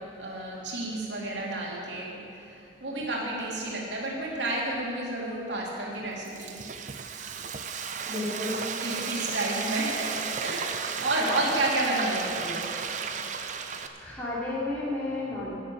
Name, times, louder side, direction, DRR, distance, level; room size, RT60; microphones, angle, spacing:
voice 1, 0.0-6.8 8.1-8.5 8.8-12.7, right 2 dB, 75° right, -3 dB, 2.5 m, -31 dB
Frying (food), 6.0-13.9, right 6 dB, 40° right, 0.6 m, -34 dB
voice 2, 8.0-8.6 10.9-11.3 14.0-15.5, left 2 dB, 10° left, -9 dB, 3.1 m, -32 dB
12.0 x 7.4 x 9.1 m, 2.6 s
head